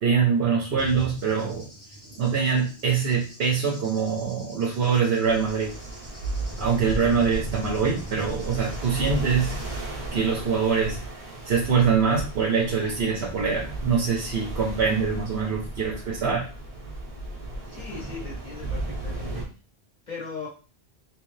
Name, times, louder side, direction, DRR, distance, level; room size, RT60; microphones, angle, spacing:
voice 1, 0.0-1.7 2.2-5.7 6.6-9.6 10.1-11.0 11.5-16.5, right 6 dB, 70° right, -1 dB, 1.0 m, -24 dB
Cricket / Thunder, 0.8-9.8, right 2 dB, 70° left, 1.6 m, -42 dB
sound 1, 5.2-19.4, right 1 dB, 35° right, 1.1 m, -35 dB
voice 2, 17.7-19.4 20.1-20.5, left 5 dB, 45° left, -5 dB, 1.7 m, -39 dB
3.3 x 3.1 x 3.1 m, 0.36 s
omnidirectional pair, 1.1 m